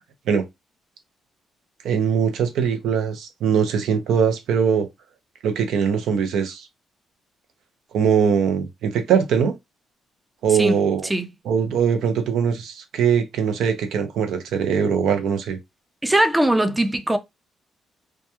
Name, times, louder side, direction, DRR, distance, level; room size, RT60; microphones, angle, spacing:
voice 1, 1.8-4.9 5.4-6.7 7.9-9.5 10.4-11.1 11.5-15.6, right 7 dB, 80° right, 0.6 m, -21 dB
voice 2, 10.6-11.3 16.0-17.2, right 1 dB, 10° right, 0.5 m, -21 dB
2.2 x 2.2 x 2.9 m
cardioid pair, 90°, 0 cm